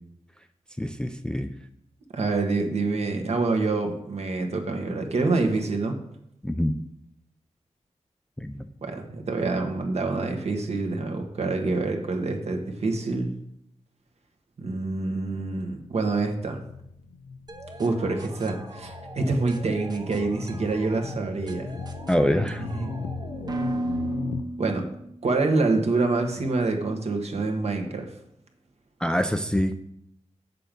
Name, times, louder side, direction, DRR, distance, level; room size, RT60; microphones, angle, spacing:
voice 1, 0.8-1.5 6.4-6.8 8.4-8.6 22.1-22.6 29.0-29.7, equal, 5° left, 7 dB, 0.4 m, -25 dB
voice 2, 2.1-6.0 8.8-13.3 14.6-16.6 17.8-21.7 22.6-23.0 24.6-24.8 25.2-28.1, right 3 dB, 60° right, 4 dB, 1.3 m, -26 dB
sound 1, 15.9-24.4, left 5 dB, 65° left, 0.5 m, -38 dB
sound 2, 17.5-25.3, right 1 dB, 35° right, 0.8 m, -37 dB
7.5 x 6.7 x 5.2 m, 0.76 s
wide cardioid pair, 160°, 12 cm